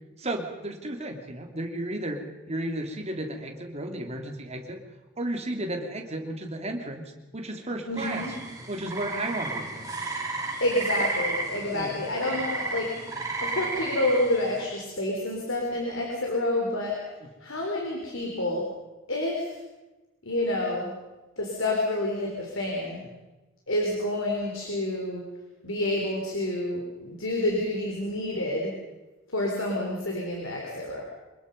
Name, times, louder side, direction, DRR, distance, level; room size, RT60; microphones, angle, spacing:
voice 1, 0.2-4.8 5.2-8.3 8.7-9.9 11.7-12.0, right 1 dB, 35° right, 3 dB, 2.9 m, -33 dB
voice 2, 7.9-8.3 10.6-12.9 13.4-17.0 17.4-18.7 19.1-19.5 20.2-20.9 21.4-23.0 23.7-25.2 25.6-28.7 29.3-31.0, left 1 dB, 80° left, -1 dB, 3.9 m, -28 dB
sound 1, 8.0-14.6, right 2 dB, 15° right, 4.6 m, -33 dB
25.0 x 21.0 x 5.4 m, 1.1 s
head